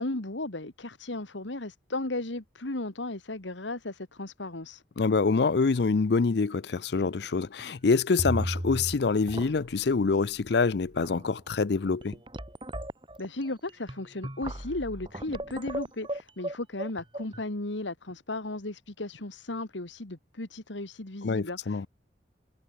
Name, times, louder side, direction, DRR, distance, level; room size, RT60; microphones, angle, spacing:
voice 1, 0.0-4.8 13.2-21.9, left 2 dB, 85° left, 2.1 m, -35 dB
voice 2, 5.0-12.2 21.2-21.9, left 4 dB, 65° left, 0.5 m, -26 dB
sound 1, 6.9-7.3 7.6-7.7 8.2-9.0 9.3-9.8 10.6-10.7 11.0-11.3 11.9-17.4, right 1 dB, 25° right, 3.5 m, -36 dB
head